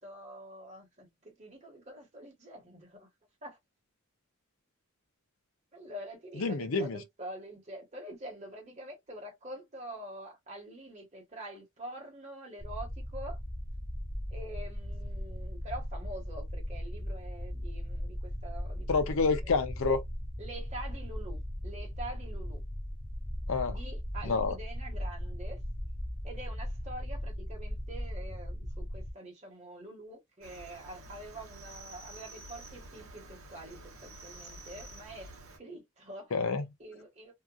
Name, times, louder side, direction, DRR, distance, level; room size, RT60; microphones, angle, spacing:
voice 1, 0.0-3.1 3.4-3.6 5.7-13.4 14.3-19.2 20.4-22.6 23.7-25.6 26.2-35.3 35.6-36.3 36.8-37.3, right 1 dB, 30° right, 1.2 m, -46 dB
voice 2, 6.4-7.0 18.9-20.0 23.5-23.7 24.2-24.6 36.3-36.7, left 4 dB, 75° left, 0.6 m, -28 dB
sound 1, 12.6-29.1, equal, 10° left, 0.4 m, -38 dB
Cricket, 30.4-35.6, right 2 dB, 70° right, 0.8 m, -49 dB
2.8 x 2.4 x 2.3 m
head